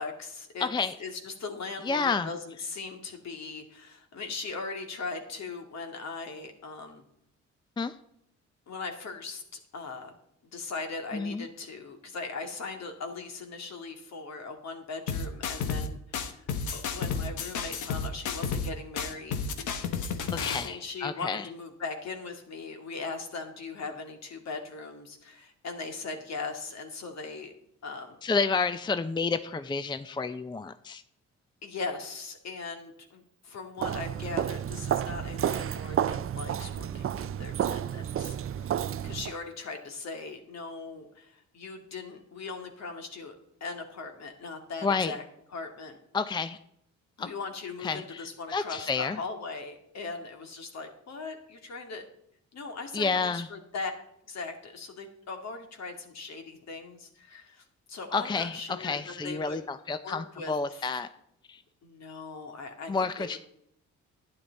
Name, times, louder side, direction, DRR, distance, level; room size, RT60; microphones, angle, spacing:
voice 1, 0.0-0.7 1.0-7.0 8.7-9.4 9.7-10.1 10.5-16.4 16.7-19.4 20.6-27.5 27.8-28.2 31.6-43.3 43.6-45.2 45.5-46.0 47.2-52.0 52.5-53.9 54.3-59.6 60.0-61.0 61.8-63.4, left 4 dB, 60° left, 4 dB, 2.4 m, -39 dB
voice 2, 0.6-1.0 1.8-2.3 7.8-7.9 11.1-11.5 20.3-21.4 28.2-31.0 44.8-45.2 46.1-46.6 47.2-47.3 47.8-48.2 48.5-49.2 52.9-53.5 58.1-61.1 61.5-61.6 62.9-63.4, left 4 dB, 15° left, 11 dB, 0.5 m, -30 dB
sound 1, 15.1-15.9 16.1-18.7 19.0-20.7, left 5 dB, 80° left, 1.3 m, -32 dB
Walk footsteps, 33.8-39.4, right 10 dB, 45° right, 0.5 m, -31 dB
12.0 x 9.8 x 4.1 m, 0.75 s
cardioid pair, 90°, 30 cm